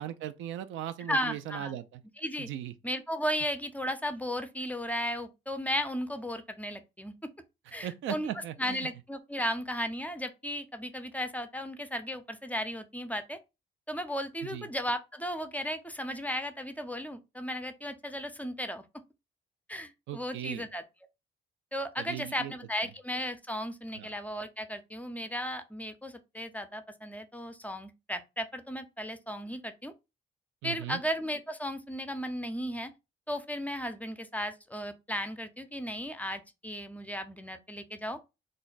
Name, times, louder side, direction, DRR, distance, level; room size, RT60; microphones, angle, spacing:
voice 1, 0.0-2.0 2.4-2.7 7.7-8.9 14.4-14.7 20.1-20.6 22.0-22.5 23.9-24.1 30.6-31.0, right 11 dB, 80° right, 0.4 m, -38 dB
voice 2, 1.1-1.8 2.2-2.5 2.8-7.1 7.7-8.3 8.6-13.4 13.9-18.8 19.7-20.8 21.7-29.9 30.6-32.9 33.3-38.2, equal, 10° left, 0.4 m, -35 dB
2.5 x 2.1 x 3.8 m
cardioid pair, 90°, 20 cm